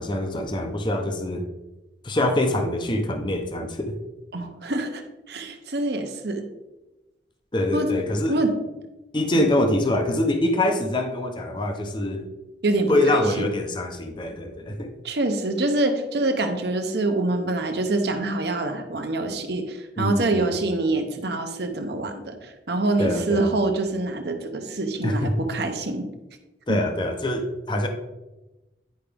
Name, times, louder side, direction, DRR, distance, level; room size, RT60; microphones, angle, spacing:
voice 1, 0.0-1.4 2.0-3.9 7.5-8.4 9.1-12.2 12.9-14.9 20.0-20.5 23.0-23.5 25.0-25.3 26.7-27.9, left 1 dB, 25° left, 5 dB, 0.7 m, -24 dB
voice 2, 4.3-6.4 7.7-7.9 8.3-8.5 12.6-13.5 15.0-26.1 26.7-26.8, right 2 dB, 60° right, 5 dB, 0.9 m, -25 dB
10.0 x 4.9 x 3.5 m, 1.0 s
head